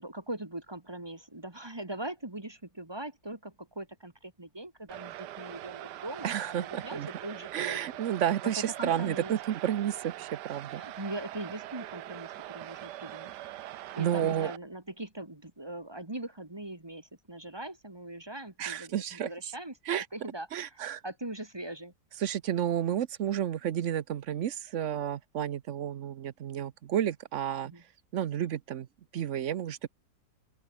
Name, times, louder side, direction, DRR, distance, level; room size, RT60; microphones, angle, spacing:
voice 1, 0.0-8.0 8.5-9.4 10.7-13.3 14.0-20.8 21.0-21.9 27.6-27.8, right 1 dB, 15° right, 1.9 m, -41 dB
sound 1, 4.9-14.6, right 14 dB, 80° right, 1.3 m, -43 dB
voice 2, 6.2-7.1 7.5-10.8 14.0-14.5 18.6-19.3 19.9-20.1 20.5-21.0 22.2-27.7 28.1-28.9 29.1-29.9, right 10 dB, 55° right, 0.9 m, -31 dB
open air
omnidirectional pair, 1.8 m